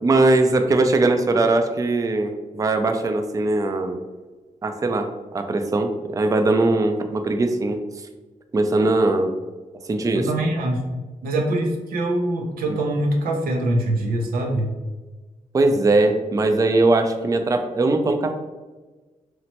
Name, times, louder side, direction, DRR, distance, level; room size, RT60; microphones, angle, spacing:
voice 1, 0.0-4.0 4.6-8.1 8.5-9.3 9.8-10.3 15.5-18.3, right 2 dB, 25° right, 6 dB, 0.3 m, -20 dB
voice 2, 10.1-14.7, right 1 dB, 90° right, 1 dB, 0.5 m, -24 dB
3.0 x 2.1 x 2.9 m, 1.2 s
cardioid pair, 50°, 15 cm